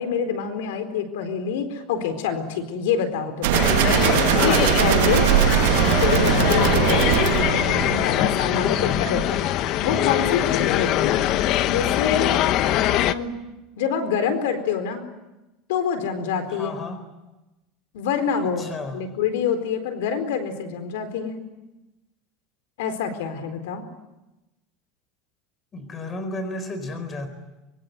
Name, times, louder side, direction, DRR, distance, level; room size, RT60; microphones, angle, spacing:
voice 1, 0.0-4.1 4.4-5.3 6.0-7.1 7.6-11.2 11.7-12.4 12.8-13.3 13.8-15.0 15.7-16.8 17.9-21.4 22.8-23.8, left 7 dB, 90° left, 9 dB, 4.3 m, -26 dB
sound 1, 3.4-8.3, right 15 dB, 85° right, 1.0 m, -20 dB
sound 2, 3.5-13.1, left 12 dB, 45° left, 1.0 m, -22 dB
voice 2, 8.6-9.0 16.5-17.0 18.6-19.0 25.7-27.3, left 2 dB, 20° left, 10 dB, 4.3 m, -33 dB
25.0 x 23.5 x 9.5 m, 1.0 s
supercardioid pair, 160°, 0 cm